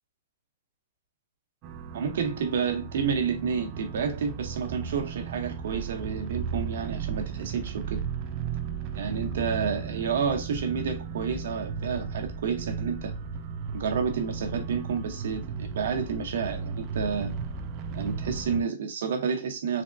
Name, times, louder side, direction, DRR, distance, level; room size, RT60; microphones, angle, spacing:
sound 1, 1.6-18.6, right 6 dB, 40° right, 0.4 m, -35 dB
voice 1, 1.9-8.0 8.9-13.1 13.7-17.3 17.9-19.8, right 6 dB, 70° right, 0.8 m, -30 dB
3.3 x 2.2 x 2.6 m
hypercardioid pair, 125°, 0 cm